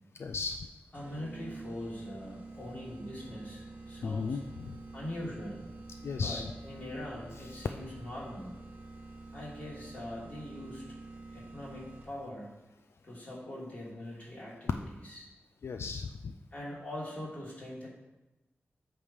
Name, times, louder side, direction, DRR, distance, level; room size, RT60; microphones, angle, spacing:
voice 1, 0.2-0.6 4.0-4.8 6.0-6.4 15.6-16.3, left 4 dB, 75° left, 7 dB, 0.3 m, -35 dB
voice 2, 0.9-4.4 4.9-5.7 6.2-8.5 9.3-10.8 11.3-12.5 13.0-15.3 16.5-17.9, left 1 dB, 30° left, -6 dB, 3.0 m, -42 dB
sound 1, 0.9-12.3, right 2 dB, 35° right, 1.0 m, -48 dB
8.3 x 3.6 x 6.4 m, 1.0 s
wide cardioid pair, 130°, 4 cm